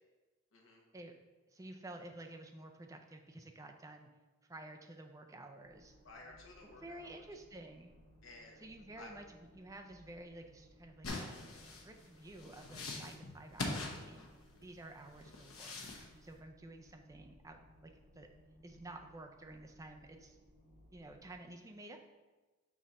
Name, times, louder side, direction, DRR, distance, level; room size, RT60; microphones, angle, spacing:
voice 1, 0.5-0.8 6.0-7.2 8.2-8.6 8.9-9.1, left 2 dB, 70° left, 0 dB, 1.2 m, -54 dB
voice 2, 1.5-4.1 4.5-6.0 6.8-8.0 8.6-14.3 14.6-15.8 16.2-18.3 18.6-20.4 20.9-22.0, right 2 dB, 15° right, 4 dB, 0.4 m, -52 dB
sound 1, 5.6-21.3, equal, 55° right, 1.9 m, -63 dB
sound 2, 11.0-14.7 15.2-16.1, left 2 dB, 90° left, 0.9 m, -43 dB
6.1 x 3.8 x 4.1 m, 1.2 s
head